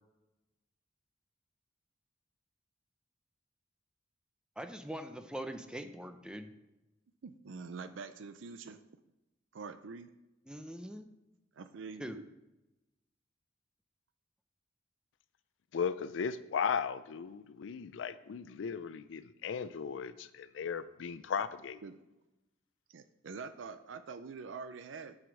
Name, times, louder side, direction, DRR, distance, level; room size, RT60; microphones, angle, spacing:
voice 1, 4.6-6.5 10.5-11.1 12.0-12.2, equal, 5° right, 7 dB, 0.5 m, -42 dB
voice 2, 7.2-8.8 9.5-10.1 11.5-12.2 21.8-22.0 22.9-25.2, right 5 dB, 85° right, 10 dB, 0.5 m, -45 dB
voice 3, 15.7-21.8, left 6 dB, 80° left, 14 dB, 0.4 m, -36 dB
9.2 x 5.0 x 6.2 m, 0.97 s
head